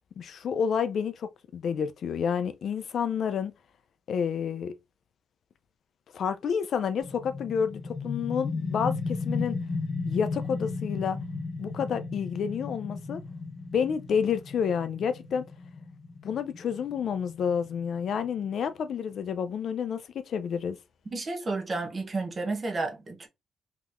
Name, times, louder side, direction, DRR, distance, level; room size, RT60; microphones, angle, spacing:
voice 1, 0.2-3.5 4.1-4.7 6.1-9.6 10.0-11.2 11.6-13.2 13.7-15.4 16.2-20.8, left 7 dB, 50° left, 0.3 m, -29 dB
sound 1, 7.0-18.4, left 3 dB, 35° left, 1.1 m, -35 dB
voice 2, 21.1-23.3, right 3 dB, 25° right, 0.7 m, -31 dB
3.7 x 2.8 x 2.4 m
wide cardioid pair, 180°, 0 cm